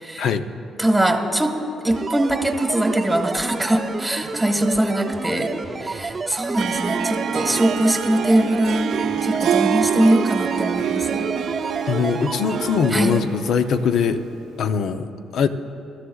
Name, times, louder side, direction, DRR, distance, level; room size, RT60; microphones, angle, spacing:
voice 1, 0.8-1.6 1.8-5.5 5.8-8.9 9.2-11.3 12.9-13.1, right 1 dB, 5° right, 3 dB, 1.3 m, -21 dB
sound 1, 1.9-13.2, right 4 dB, 35° right, 0.7 m, -30 dB
Harp, 6.5-14.3, right 8 dB, 75° right, 0.5 m, -26 dB
voice 2, 11.9-14.2 14.6-15.5, left 6 dB, 70° left, 9 dB, 0.6 m, -22 dB
22.5 x 13.0 x 2.3 m, 2.8 s
cardioid pair, 90°, 0 cm